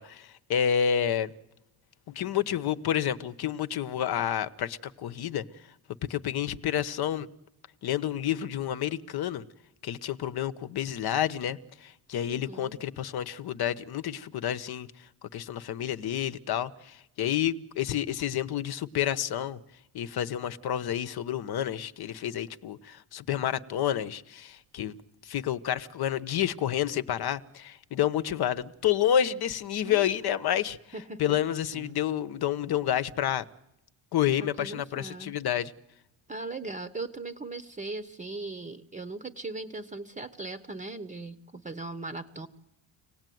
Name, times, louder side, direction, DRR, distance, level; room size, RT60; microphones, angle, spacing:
voice 1, 0.0-1.3 2.1-5.4 6.0-7.3 7.8-9.4 9.8-19.6 19.9-25.0 25.2-30.8 31.2-33.4 34.1-35.7, left 10 dB, 55° left, 13 dB, 1.1 m, -29 dB
voice 2, 12.3-12.8 30.9-31.4 34.4-35.4 36.3-42.5, right 3 dB, 15° right, 10 dB, 0.9 m, -39 dB
Speech, 24.5-24.6 29.8-30.5 31.7-32.0, right 9 dB, 50° right, 0.9 m, -45 dB
25.5 x 18.0 x 9.3 m, 0.88 s
cardioid pair, 155°, 46 cm